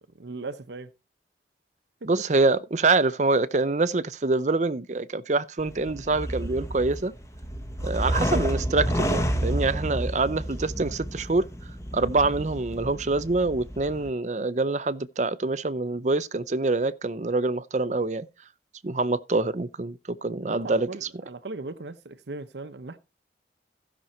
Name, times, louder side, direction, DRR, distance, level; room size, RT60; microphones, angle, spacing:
voice 1, 0.2-0.9 2.0-2.1 20.3-23.0, right 3 dB, 70° right, 0.8 m, -38 dB
voice 2, 2.1-7.1 7.8-11.5 11.9-18.3 18.8-20.9, right 3 dB, 40° right, 0.6 m, -25 dB
sound 1, 5.6-14.1, equal, 15° left, 1.2 m, -30 dB
15.5 x 6.2 x 4.3 m
head